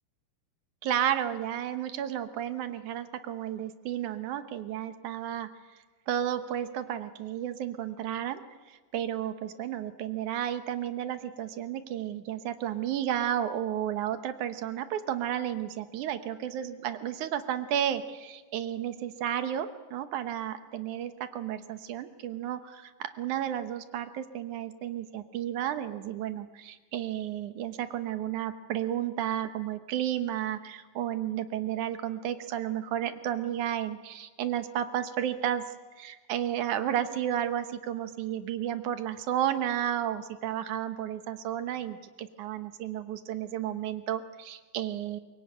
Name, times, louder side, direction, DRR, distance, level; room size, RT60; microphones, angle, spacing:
voice 1, 0.8-5.5 6.1-8.4 8.7-45.2, right 10 dB, 70° right, 10 dB, 2.4 m, -32 dB
23.5 x 22.0 x 9.0 m, 1.3 s
omnidirectional pair, 3.8 m